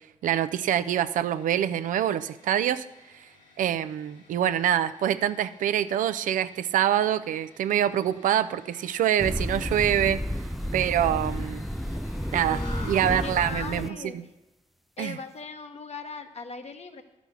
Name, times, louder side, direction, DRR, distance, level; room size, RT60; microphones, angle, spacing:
voice 1, 0.2-2.8 3.6-10.2 10.7-11.6 12.3-13.9 15.0-15.2, right 10 dB, 80° right, 12 dB, 0.4 m, -25 dB
sound 1, 1.2-13.5, left 2 dB, 85° left, 2.7 m, -50 dB
sound 2, 9.2-13.9, equal, ahead, 0.4 m, -31 dB
voice 2, 12.5-12.9 13.2-14.2 15.0-17.0, left 4 dB, 55° left, 7 dB, 1.1 m, -39 dB
11.5 x 6.1 x 6.8 m, 1.0 s
supercardioid pair, 50°, 13 cm